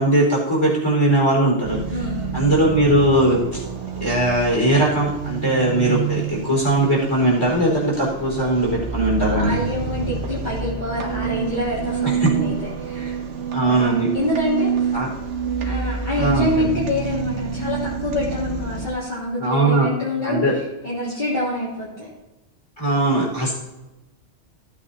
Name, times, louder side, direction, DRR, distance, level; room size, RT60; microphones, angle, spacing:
voice 1, 0.0-1.8 2.3-3.6 4.0-9.5 12.0-12.5 13.0-13.1 13.5-14.1 14.9-15.1 16.2-16.5 19.4-19.9 20.2-20.5 22.8-23.5, right 1 dB, 25° left, -4 dB, 4.6 m, -19 dB
sound 1, 1.6-18.9, right 6 dB, 85° right, 1.4 m, -28 dB
voice 2, 1.9-2.3 9.1-13.1 13.7-14.9 15.6-22.1, left 1 dB, 40° left, -10 dB, 3.2 m, -26 dB
16.0 x 8.6 x 2.8 m, 1.0 s
omnidirectional pair, 1.2 m